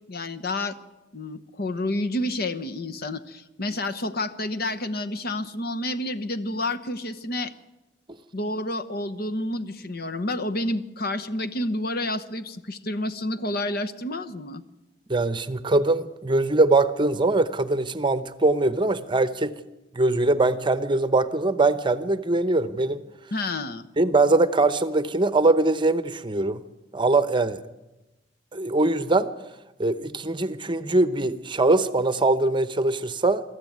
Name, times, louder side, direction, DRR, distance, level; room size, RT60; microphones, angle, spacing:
voice 1, 0.1-0.8 1.1-7.5 8.3-14.6 23.3-23.9, left 1 dB, 55° left, 10 dB, 1.0 m, -29 dB
voice 2, 15.1-19.5 19.9-23.0 24.0-26.6 26.9-27.6 28.5-29.3 29.8-33.4, right 2 dB, 25° right, 13 dB, 0.8 m, -22 dB
22.5 x 13.5 x 9.3 m, 1.0 s
head